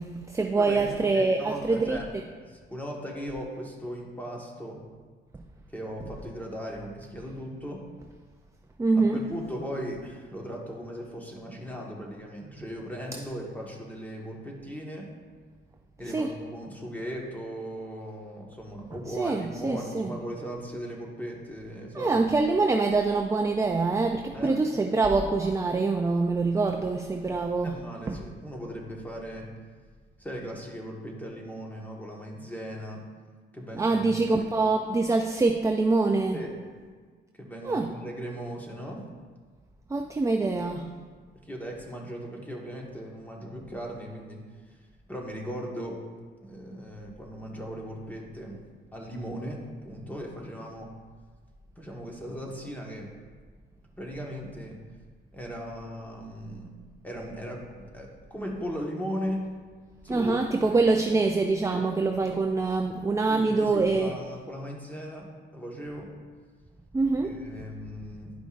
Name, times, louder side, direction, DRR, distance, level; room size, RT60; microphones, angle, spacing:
voice 1, 0.0-2.0 8.8-9.2 16.1-16.3 19.2-20.1 21.9-27.8 28.1-28.2 33.7-36.4 37.6-37.9 39.9-40.9 60.1-64.1 66.9-67.4, right 3 dB, 15° right, 4 dB, 0.4 m, -25 dB
voice 2, 0.6-2.1 2.5-4.8 5.7-7.8 8.9-15.1 16.0-22.2 24.3-24.5 27.6-29.5 30.2-33.0 33.5-34.0 36.3-36.5 37.4-39.0 41.5-44.4 45.1-46.0 46.4-48.6 48.9-49.6 49.8-50.9 51.8-53.1 54.0-54.8 55.3-56.8 57.0-59.4 60.0-60.4 60.7-60.8 61.7-61.9 62.3-62.4 63.3-65.3 65.5-66.1 67.2-68.3, equal, 10° left, -1 dB, 1.5 m, -37 dB
11.5 x 5.1 x 2.5 m, 1.5 s
cardioid pair, 90°, 20 cm